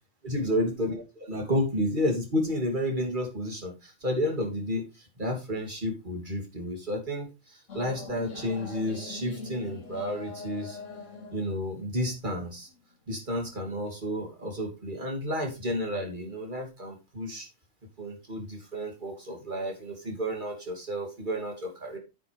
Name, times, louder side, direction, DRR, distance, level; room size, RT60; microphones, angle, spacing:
voice 1, 0.2-10.8 11.3-12.7 13.1-17.5 18.0-22.0, equal, 40° right, 1 dB, 3.2 m, -31 dB
sound 1, 7.7-12.8, left 3 dB, 80° left, 2.3 m, -42 dB
9.3 x 8.8 x 3.5 m, 0.27 s
omnidirectional pair, 1.3 m